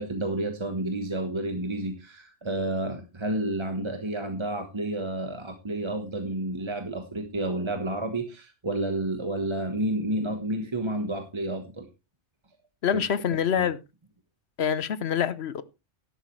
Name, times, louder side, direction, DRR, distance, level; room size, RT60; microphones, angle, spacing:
voice 1, 0.0-11.9 13.6-13.7, right 1 dB, 25° right, 1.2 m, -30 dB
voice 2, 12.8-13.8 14.6-15.6, left 8 dB, 60° left, 1.0 m, -26 dB
12.5 x 11.5 x 3.2 m
omnidirectional pair, 1.2 m